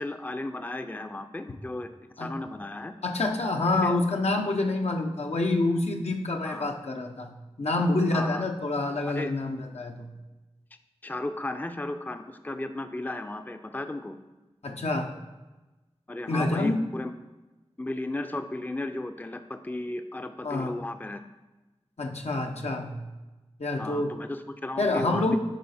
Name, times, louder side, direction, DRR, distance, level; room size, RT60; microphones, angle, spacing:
voice 1, 0.0-1.9 2.2-2.9 3.8-4.0 6.4-6.7 8.1-8.4 9.1-9.3 11.0-14.2 16.1-17.1 17.8-21.2 23.8-25.4, left 2 dB, 15° left, 8 dB, 0.4 m, -34 dB
voice 2, 3.0-10.1 14.6-15.2 16.3-16.8 20.4-20.7 22.0-23.0 23.6-24.2 24.8-25.4, left 2 dB, 80° left, 3 dB, 0.8 m, -27 dB
10.0 x 4.0 x 4.2 m, 1.1 s
wide cardioid pair, 50°, 11 cm